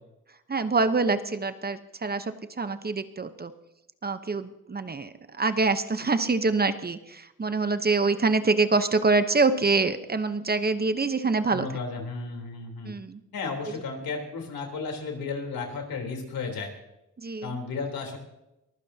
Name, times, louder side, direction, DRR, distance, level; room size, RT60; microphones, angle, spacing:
voice 1, 0.5-3.5 4.0-11.7 12.9-13.2 17.2-17.6, right 3 dB, 25° right, 10 dB, 0.9 m, -25 dB
voice 2, 11.5-12.9 13.3-16.7 17.4-18.2, left 4 dB, 85° left, 2 dB, 3.6 m, -33 dB
23.0 x 15.0 x 2.8 m, 0.90 s
cardioid pair, 90°, 35 cm